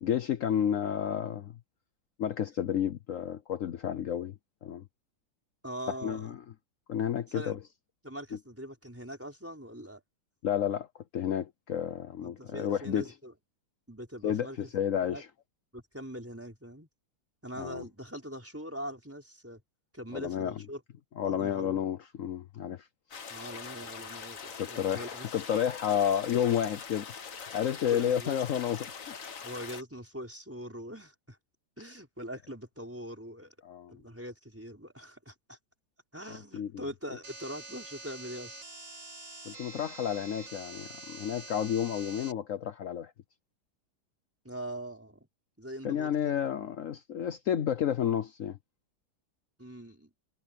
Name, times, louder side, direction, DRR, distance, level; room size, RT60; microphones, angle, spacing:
voice 1, 0.0-1.5 2.2-4.3 4.6-4.8 6.0-6.4 6.9-7.6 10.4-10.9 11.1-13.1 14.2-14.5 14.7-15.2 17.6-17.8 20.1-20.6 21.2-22.9 24.6-27.1 27.5-29.1 33.6-34.0 36.5-36.9 39.5-43.1 45.8-48.6, left 9 dB, 70° left, 0.7 m, -31 dB
voice 2, 5.6-6.3 7.3-7.6 8.0-10.0 12.2-13.3 13.9-14.7 15.1-15.2 15.7-16.9 17.4-19.6 19.9-20.8 21.2-21.8 23.3-25.2 25.9-26.0 27.9-28.4 29.4-31.4 31.8-33.5 33.9-35.6 36.1-38.6 44.4-45.3 45.6-46.3 49.6-50.1, equal, 5° right, 4.7 m, -42 dB
sound 1, 23.1-29.8, left 6 dB, 45° left, 1.6 m, -43 dB
sound 2, 37.2-42.3, right 2 dB, 60° right, 6.3 m, -46 dB
omnidirectional pair, 2.3 m